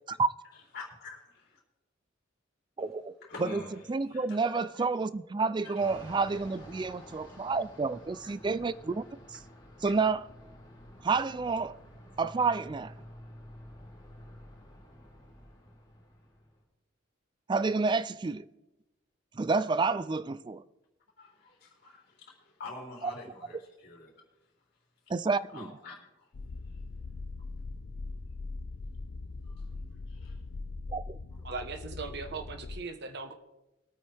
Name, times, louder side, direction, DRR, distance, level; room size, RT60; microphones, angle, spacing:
voice 1, 0.7-1.6 3.2-4.9 5.6-5.8 8.1-8.3 9.8-9.9 21.2-24.1 25.5-26.3 29.4-29.8 30.1-30.4, left 2 dB, 50° left, 3.7 m, -47 dB
voice 2, 2.8-3.1 3.4-3.6 3.9-9.0 9.3-9.4 9.8-10.2 11.0-11.8 12.2-12.9 17.5-18.5 19.4-20.6 25.1-25.7 30.9-31.2, right 4 dB, 25° right, 0.3 m, -29 dB
Fixed-wing aircraft airplane, 5.8-16.6, equal, 25° left, 3.5 m, -50 dB
sound 1, 26.3-32.8, left 3 dB, 85° left, 0.6 m, -41 dB
voice 3, 31.4-33.3, right 4 dB, 55° right, 1.3 m, -39 dB
22.0 x 9.0 x 3.5 m
head